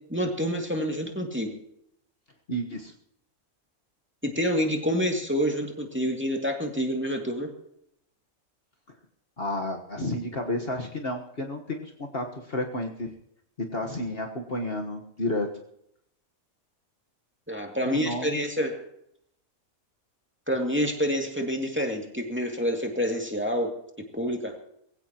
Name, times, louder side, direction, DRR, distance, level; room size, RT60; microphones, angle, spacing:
voice 1, 0.1-1.6 4.2-7.5 17.5-18.8 20.5-23.7 24.1-24.5, equal, 10° right, 1 dB, 2.3 m, -27 dB
voice 2, 2.5-2.9 9.4-13.1 13.7-15.5 17.8-18.4, left 1 dB, 45° left, 2 dB, 1.6 m, -31 dB
22.0 x 16.0 x 3.0 m, 0.75 s
omnidirectional pair, 1.5 m